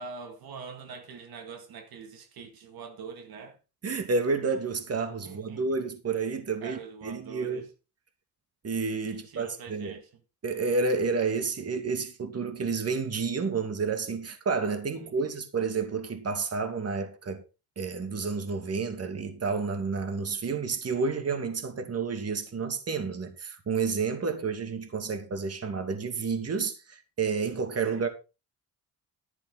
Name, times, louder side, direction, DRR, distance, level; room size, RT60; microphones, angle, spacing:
voice 1, 0.0-3.6 5.2-5.6 6.6-7.7 9.1-10.1 15.0-15.3 27.9-28.1, right 5 dB, 75° right, 2.3 m, -44 dB
voice 2, 3.8-7.6 8.6-10.0 10.4-17.4 17.8-28.1, right 4 dB, 40° right, 2.3 m, -30 dB
12.0 x 10.5 x 3.9 m
cardioid pair, 90°, 36 cm